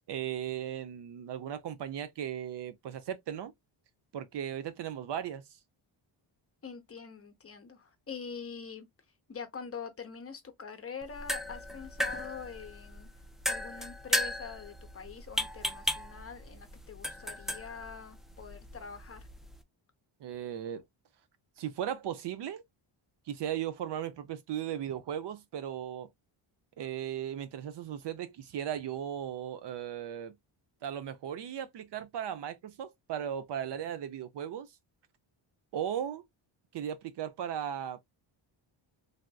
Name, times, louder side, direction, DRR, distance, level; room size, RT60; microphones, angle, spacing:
voice 1, 0.1-3.5 4.1-5.5 20.2-20.8 21.6-22.6 23.3-26.1 26.8-30.3 30.8-34.7 35.7-36.2 36.7-38.0, right 9 dB, 60° right, 0.6 m, -37 dB
voice 2, 6.6-8.9 9.3-13.1 13.5-19.3, left 6 dB, 30° left, 0.7 m, -44 dB
sound 1, 11.0-19.6, left 1 dB, ahead, 0.3 m, -36 dB
3.4 x 2.5 x 2.2 m
cardioid pair, 130°, 48 cm